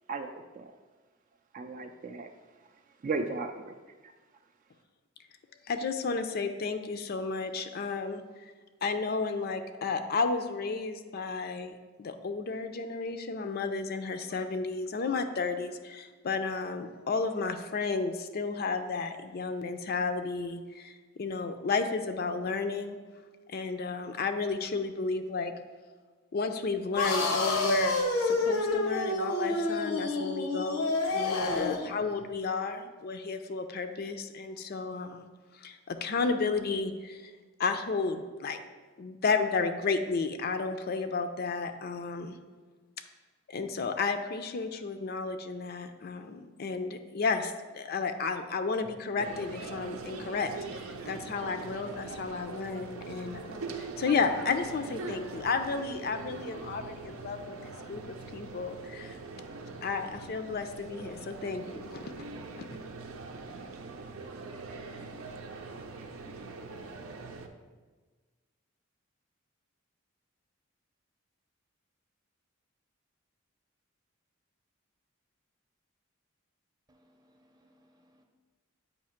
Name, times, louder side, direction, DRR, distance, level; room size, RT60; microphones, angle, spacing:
voice 1, 0.1-0.7 1.5-3.8 4.0-4.1, right 3 dB, 40° right, 6 dB, 0.3 m, -37 dB
voice 2, 5.7-8.5 8.8-23.0 23.5-25.5 26.3-35.3 35.5-37.3 37.6-38.6 39.0-42.4 43.5-59.2 59.8-62.1 62.6-62.7, left 4 dB, 45° left, 8 dB, 0.4 m, -32 dB
sound 1, 27.0-31.9, left 2 dB, 85° left, 0.8 m, -28 dB
sound 2, 49.2-67.5, right 3 dB, 85° right, 0.6 m, -42 dB
voice 3, 76.9-78.2, equal, 20° right, 2 dB, 0.7 m, -66 dB
8.3 x 2.8 x 5.7 m, 1.4 s
head